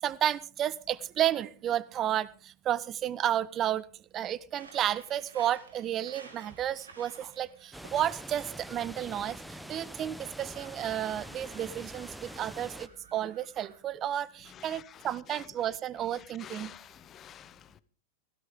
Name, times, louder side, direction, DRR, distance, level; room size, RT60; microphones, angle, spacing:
voice 1, 0.0-3.8 4.1-16.7, right 11 dB, 30° right, 0.8 m, -32 dB
sound 1, 4.5-13.8, right 3 dB, 75° right, 3.4 m, -55 dB
sound 2, 7.7-12.9, equal, ahead, 1.0 m, -45 dB
voice 2, 14.4-15.8 16.1-17.8, left 10 dB, 30° left, 0.8 m, -50 dB
16.5 x 16.0 x 3.7 m
figure-of-eight pair, 90°, 0 cm